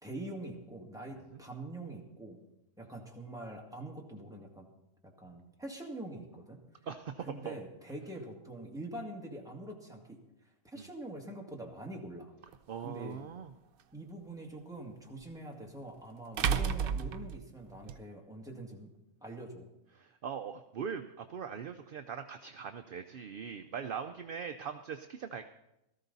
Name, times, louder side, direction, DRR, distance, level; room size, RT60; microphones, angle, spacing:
voice 1, 0.0-2.4 2.8-4.7 5.0-6.6 7.2-10.2 10.6-12.3 12.8-13.3 13.9-18.9 19.2-19.7, right 1 dB, ahead, -1 dB, 1.9 m, -44 dB
voice 2, 6.9-7.6 10.8-10.9 12.7-13.5 20.0-25.4, right 7 dB, 55° right, 7 dB, 0.6 m, -41 dB
sound 1, 12.5-12.6 15.2-15.3 16.4-18.0, right 7 dB, 80° right, 1.1 m, -31 dB
17.5 x 13.5 x 4.0 m, 0.88 s
omnidirectional pair, 1.5 m